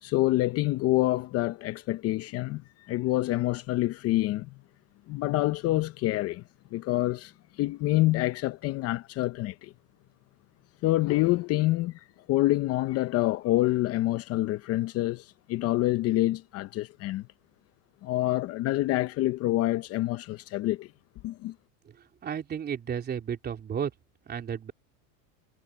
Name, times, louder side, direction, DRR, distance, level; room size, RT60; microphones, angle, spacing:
voice 1, 0.0-4.5 5.1-6.4 6.7-9.7 10.8-17.3 18.0-20.9 21.2-21.5, left 17 dB, 40° left, 0.7 m, -27 dB
voice 2, 22.2-23.9 24.3-24.7, right 8 dB, 25° right, 3.6 m, -32 dB
supercardioid pair, 140°, 38 cm